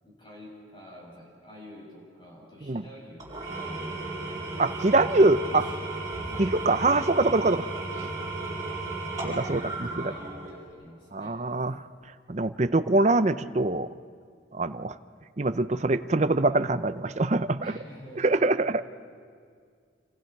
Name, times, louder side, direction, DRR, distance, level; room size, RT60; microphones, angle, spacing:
voice 1, 0.0-3.8 5.5-5.8 6.3-6.5 9.8-11.4 17.6-18.7, left 1 dB, 25° left, -4 dB, 7.5 m, -48 dB
Engine / Tools, 3.2-10.7, right 2 dB, 20° right, 7.9 m, -34 dB
voice 2, 4.6-5.6 6.4-7.7 8.0-8.1 9.2-10.1 11.1-11.8 12.3-13.9 14.5-14.9 15.4-17.7 18.2-18.8, right 2 dB, 35° right, 12 dB, 0.6 m, -24 dB
28.0 x 26.5 x 4.7 m, 2.1 s
head